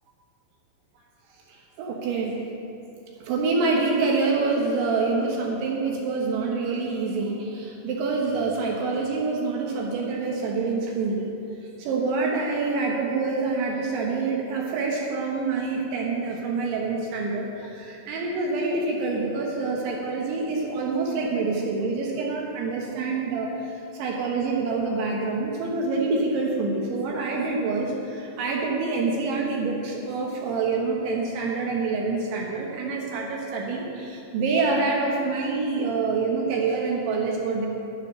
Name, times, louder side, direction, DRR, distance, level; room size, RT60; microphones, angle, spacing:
voice 1, 1.5-2.4 3.2-11.2 11.8-23.5 23.9-37.7, right 3 dB, 75° right, -1 dB, 3.3 m, -26 dB
11.0 x 10.0 x 6.7 m, 2.8 s
omnidirectional pair, 5.9 m